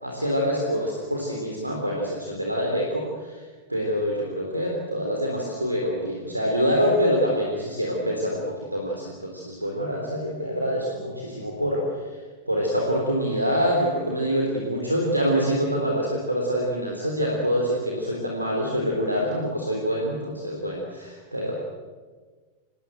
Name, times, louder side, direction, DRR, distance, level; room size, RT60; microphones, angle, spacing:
voice 1, 0.0-3.4 3.7-11.8 12.5-21.5, equal, 85° right, -1 dB, 3.7 m, -25 dB
26.0 x 20.5 x 7.9 m, 1.4 s
figure-of-eight pair, 90°, 0 cm